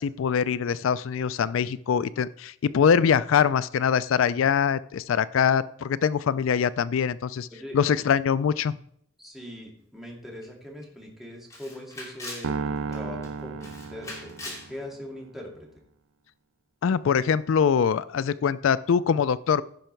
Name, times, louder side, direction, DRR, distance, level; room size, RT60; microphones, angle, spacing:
voice 1, 0.0-7.5 7.7-8.8 16.8-19.6, left 7 dB, 85° left, 17 dB, 0.4 m, -23 dB
voice 2, 9.2-15.8, left 1 dB, ahead, -2 dB, 2.4 m, -41 dB
Camera, 10.4-10.5 10.8-10.9 11.5-12.5 12.9-13.3 13.6-14.7, left 2 dB, 15° left, 2.7 m, -40 dB
sound 1, 12.4-14.8, right 5 dB, 80° right, 0.4 m, -33 dB
16.0 x 5.6 x 4.5 m, 0.70 s
head